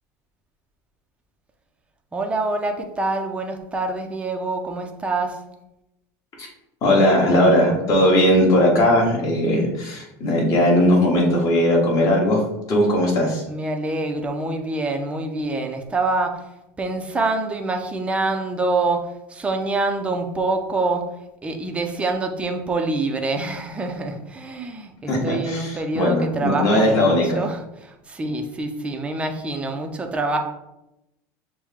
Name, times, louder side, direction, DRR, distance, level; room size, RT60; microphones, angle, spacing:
voice 1, 2.1-5.4 13.5-16.4 16.8-21.1 21.4-30.4, right 2 dB, 15° right, 3 dB, 0.5 m, -26 dB
voice 2, 6.8-12.4 12.7-13.4 25.1-27.4, left 1 dB, 40° left, -3 dB, 1.6 m, -18 dB
6.1 x 2.2 x 3.6 m, 0.91 s
supercardioid pair, 135°, 9 cm